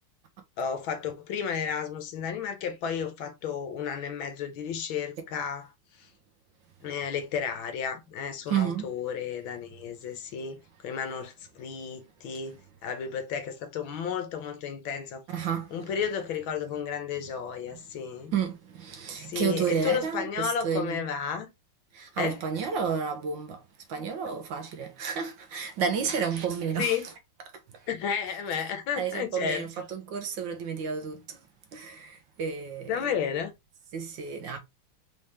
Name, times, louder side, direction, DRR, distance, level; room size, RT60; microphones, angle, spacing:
voice 1, 0.6-5.7 6.8-15.2 15.7-18.3 19.3-21.5 22.2-22.4 26.8-27.0 27.9-29.6 32.9-33.5, left 7 dB, 70° left, 1.5 m, -32 dB
voice 2, 8.5-8.9 15.3-15.9 18.3-21.0 21.9-23.6 23.9-27.1 29.0-31.4 31.7-33.1 33.9-34.6, right 6 dB, 65° right, 1.4 m, -31 dB
4.3 x 3.5 x 3.1 m
omnidirectional pair, 2.4 m